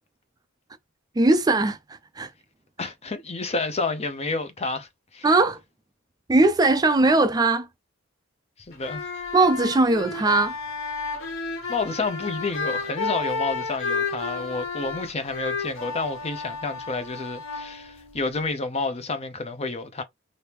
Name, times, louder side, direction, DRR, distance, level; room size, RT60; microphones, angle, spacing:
voice 1, 1.2-1.8 2.2-2.3 5.2-5.6 6.3-7.7 9.3-10.5, right 2 dB, 20° right, 0.4 m, -19 dB
voice 2, 2.8-5.3 8.7-9.1 11.7-20.0, left 3 dB, 30° left, 0.6 m, -30 dB
sound 1, 8.7-18.5, left 4 dB, 70° left, 1.1 m, -32 dB
3.4 x 2.6 x 2.9 m
head